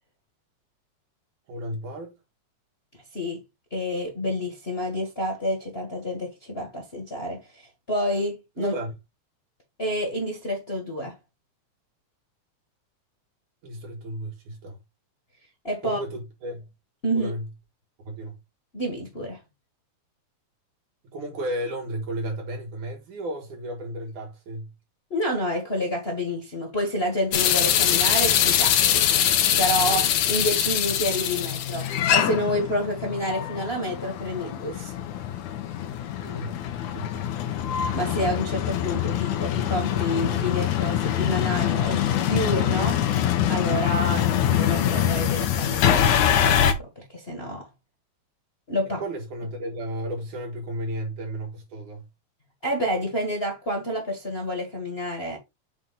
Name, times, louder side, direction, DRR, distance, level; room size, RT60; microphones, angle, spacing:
voice 1, 1.5-2.1 8.6-8.9 13.6-14.8 15.8-16.7 17.1-17.5 18.0-18.4 21.1-24.7 36.2-36.6 36.9-37.3 49.0-52.1, right 1 dB, 80° right, 3.7 m, -33 dB
voice 2, 3.7-8.7 9.8-11.2 15.6-16.0 17.0-17.3 18.7-19.4 25.1-29.1 29.6-34.9 37.9-43.0 43.5-47.7 48.7-49.0 52.6-55.4, equal, 25° left, 1.4 m, -29 dB
sound 1, 27.3-46.7, left 10 dB, 75° left, 2.3 m, -23 dB
7.5 x 3.7 x 4.0 m
omnidirectional pair, 3.5 m